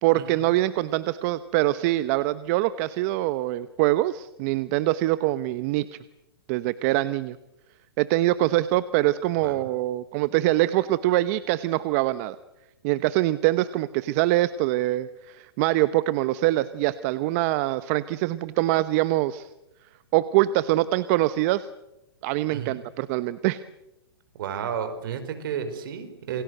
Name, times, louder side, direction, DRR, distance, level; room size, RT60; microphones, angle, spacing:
voice 1, 0.0-5.9 6.5-7.4 8.0-12.4 12.8-19.5 20.1-21.7 22.2-23.6, right 16 dB, 35° right, 15 dB, 0.8 m, -24 dB
voice 2, 24.4-26.4, right 7 dB, 55° right, 9 dB, 5.0 m, -32 dB
28.0 x 22.0 x 7.9 m, 0.91 s
hypercardioid pair, 145°, 14 cm